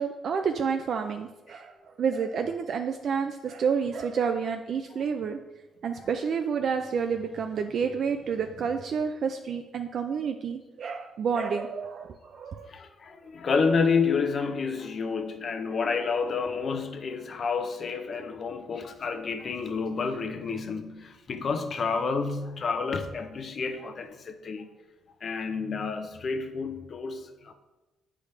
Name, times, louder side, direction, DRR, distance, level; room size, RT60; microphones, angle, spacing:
voice 1, 0.0-5.4 5.8-12.7, right 6 dB, 60° right, 6 dB, 0.4 m, -29 dB
voice 2, 12.6-24.7 25.2-27.5, left 5 dB, 50° left, 7 dB, 0.7 m, -29 dB
8.1 x 4.9 x 3.3 m, 1.1 s
cardioid pair, 90°, 0 cm